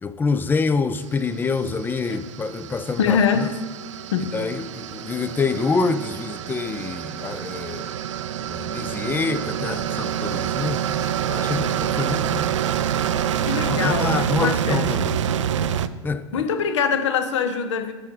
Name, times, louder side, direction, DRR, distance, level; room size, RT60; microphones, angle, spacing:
voice 1, 0.0-3.5 4.2-8.0 8.5-10.8 11.3-12.5 13.6-15.2 16.0-16.4, left 4 dB, 10° left, 0.4 m, -26 dB
sound 1, 1.2-15.9, right 9 dB, 70° right, 0.4 m, -27 dB
voice 2, 3.0-3.5 4.1-4.3 13.4-15.0 16.3-17.9, left 6 dB, 65° left, 0.9 m, -23 dB
7.8 x 6.3 x 3.9 m
figure-of-eight pair, 90°, 16 cm